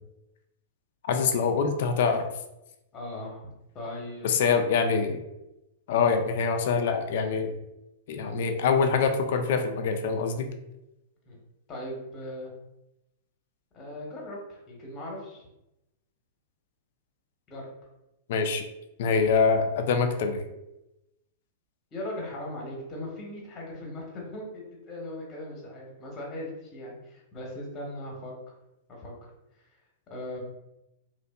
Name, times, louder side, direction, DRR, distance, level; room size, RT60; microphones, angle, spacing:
voice 1, 1.0-2.3 4.2-5.2 5.9-7.5 8.1-10.5 18.3-18.6 19.0-20.4, left 5 dB, 60° left, 6 dB, 0.3 m, -24 dB
voice 2, 2.9-4.3 11.3-11.4 11.7-12.5 13.7-15.5 17.5-17.7 21.9-28.3 28.9-29.1 30.1-30.4, left 1 dB, 25° left, -2 dB, 0.8 m, -39 dB
2.6 x 2.1 x 2.2 m, 0.90 s
hypercardioid pair, 105°, 0 cm